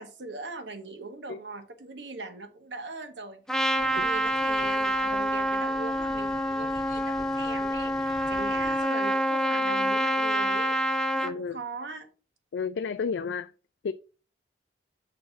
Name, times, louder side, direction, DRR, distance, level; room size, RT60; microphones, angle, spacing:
voice 1, 0.0-3.4 3.8-10.8 11.1-12.1, right 3 dB, 85° right, 1.4 m, -40 dB
Trumpet, 3.5-11.3, equal, 5° left, 0.6 m, -27 dB
sound 1, 3.8-8.8, left 1 dB, 25° left, 2.1 m, -48 dB
voice 2, 11.2-11.6 12.5-13.5 13.8-13.9, left 5 dB, 80° left, 0.4 m, -31 dB
6.3 x 4.3 x 5.7 m
head